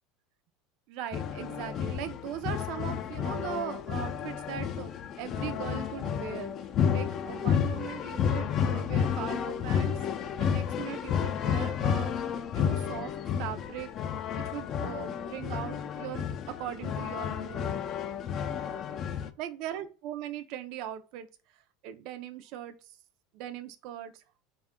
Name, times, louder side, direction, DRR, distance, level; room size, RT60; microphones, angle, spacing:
voice 1, 0.9-6.5 6.9-10.0 10.4-12.1 12.5-13.1 13.4-17.7 19.4-21.3 21.8-22.8 23.3-24.2, right 11 dB, 60° right, 0.4 m, -39 dB
sound 1, 1.1-19.3, left 8 dB, 45° left, 0.4 m, -31 dB
4.2 x 2.3 x 3.5 m
supercardioid pair, 105°, 0 cm